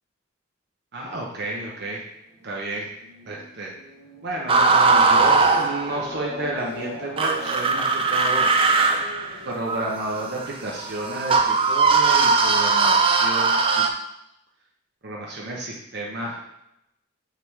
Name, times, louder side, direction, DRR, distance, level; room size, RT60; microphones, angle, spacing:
voice 1, 0.9-2.0 2.4-2.9 3.3-3.7 4.2-8.5 9.5-13.8 15.0-16.4, right 2 dB, 55° right, -2 dB, 0.8 m, -31 dB
sound 1, 1.1-10.4, left 2 dB, 65° left, 2.0 m, -41 dB
sound 2, 4.5-6.2 7.2-13.9, right 4 dB, 25° right, 0.4 m, -19 dB
5.7 x 3.6 x 4.7 m, 0.84 s
head